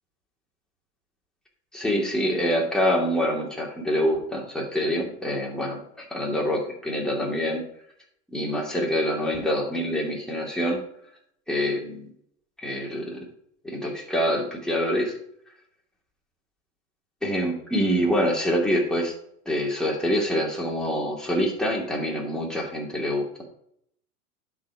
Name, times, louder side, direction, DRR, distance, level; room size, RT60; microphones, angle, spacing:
voice 1, 1.7-7.6 8.3-10.8 11.5-12.1 12.6-13.2 13.6-15.1 17.2-19.1 19.5-23.3, equal, ahead, -2 dB, 2.5 m, -26 dB
11.0 x 4.8 x 4.9 m, 0.71 s
hypercardioid pair, 110°, 47 cm